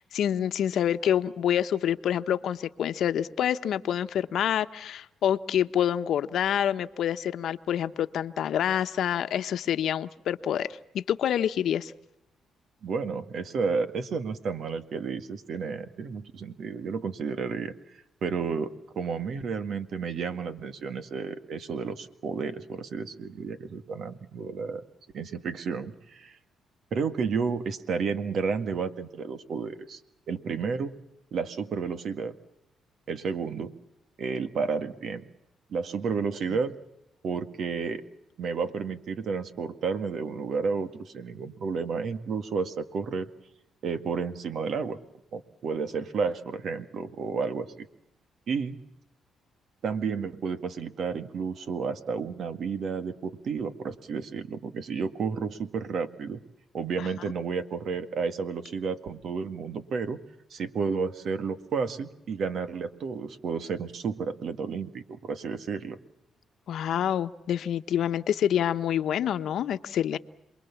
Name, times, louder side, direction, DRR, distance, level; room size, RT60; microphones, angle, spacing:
voice 1, 0.0-10.7 10.9-11.9 36.5-36.6 57.0-57.1 66.7-70.2, left 10 dB, 70° left, 10 dB, 1.1 m, -27 dB
voice 2, 12.8-17.7 18.2-24.8 25.1-26.4 26.9-30.0 30.3-30.9 31.3-32.3 33.1-33.7 34.2-35.2 35.7-36.7 37.2-38.0 38.4-43.3 43.8-45.0 45.3-47.9 48.5-48.8 49.8-56.4 56.7-60.2 60.5-66.0, right 5 dB, 60° right, 10 dB, 2.0 m, -31 dB
28.0 x 22.0 x 7.3 m, 0.85 s
cardioid pair, 90°, 0 cm